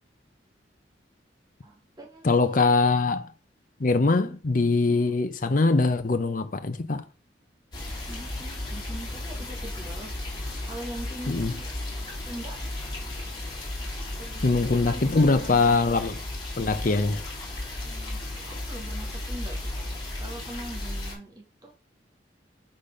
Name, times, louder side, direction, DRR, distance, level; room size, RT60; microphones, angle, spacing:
voice 1, 1.6-2.8 4.2-4.4 4.9-5.2 8.1-10.1 10.7-12.6 14.2-15.8 17.8-21.7, right 1 dB, 20° right, 1.4 m, -42 dB
voice 2, 2.2-3.3 3.8-7.0 11.3-11.5 14.4-16.2 16.6-17.2, left 3 dB, 45° left, 0.7 m, -22 dB
sound 1, 7.7-21.1, left 1 dB, 25° left, 2.2 m, -35 dB
5.1 x 4.3 x 5.1 m
head